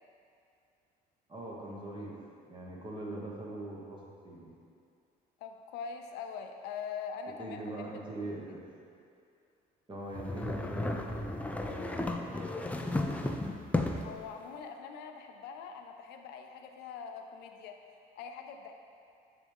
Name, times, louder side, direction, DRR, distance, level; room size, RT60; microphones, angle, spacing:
voice 1, 1.3-2.1 2.4-4.5 7.4-8.6 9.9-13.2, right 1 dB, 30° right, -3 dB, 1.3 m, -42 dB
voice 2, 5.4-7.6 14.0-17.8 18.2-18.7, left 6 dB, 85° left, 5 dB, 0.5 m, -43 dB
sound 1, 10.1-14.2, left 2 dB, 10° left, 0.4 m, -34 dB
9.3 x 3.5 x 3.5 m, 2.4 s
cardioid pair, 110°, 17 cm